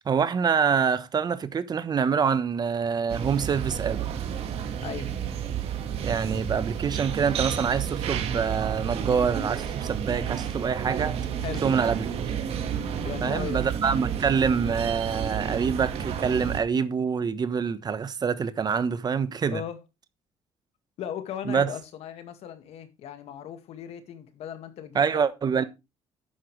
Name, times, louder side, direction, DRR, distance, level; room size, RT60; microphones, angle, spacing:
voice 1, 0.0-4.0 6.0-11.2 11.6-12.0 13.2-19.6 21.5-21.7 24.9-25.6, right 6 dB, 40° right, 1.2 m, -26 dB
Cruiseship - inside passenger main hall, 3.1-16.6, right 8 dB, 70° right, 2.4 m, -31 dB
voice 2, 4.8-5.1 11.4-11.7 13.0-13.6 19.5-19.8 21.0-25.2 25.5-25.7, left 9 dB, 75° left, 2.1 m, -37 dB
11.5 x 9.4 x 3.3 m
cardioid pair, 105°, 11 cm